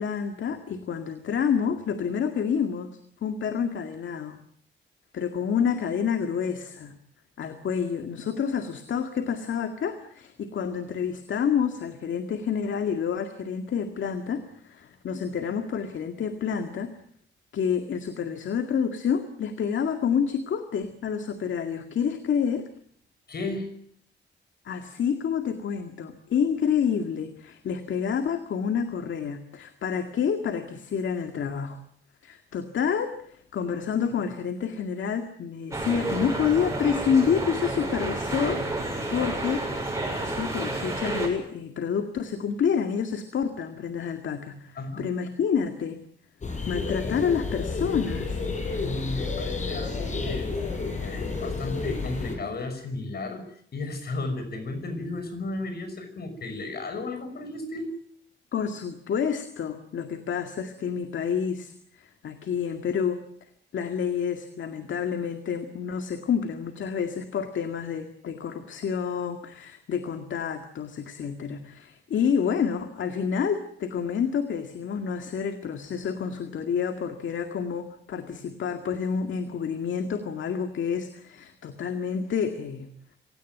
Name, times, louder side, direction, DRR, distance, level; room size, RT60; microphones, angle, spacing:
voice 1, 0.0-4.4 5.1-7.0 7.4-17.0 17.5-22.7 24.7-31.8 32.2-39.7 40.2-46.0 46.7-48.4 58.5-63.2 63.7-82.9, left 7 dB, 75° left, 7 dB, 2.1 m, -28 dB
voice 2, 23.3-23.7 44.8-45.0 48.8-53.4 53.7-58.0, left 2 dB, 55° left, 8 dB, 6.2 m, -34 dB
sound 1, 35.7-41.3, right 2 dB, 15° right, 7.4 m, -30 dB
sound 2, 46.4-52.4, left 3 dB, 40° left, 6.1 m, -31 dB
26.0 x 17.5 x 9.4 m, 0.64 s
wide cardioid pair, 150°, 20 cm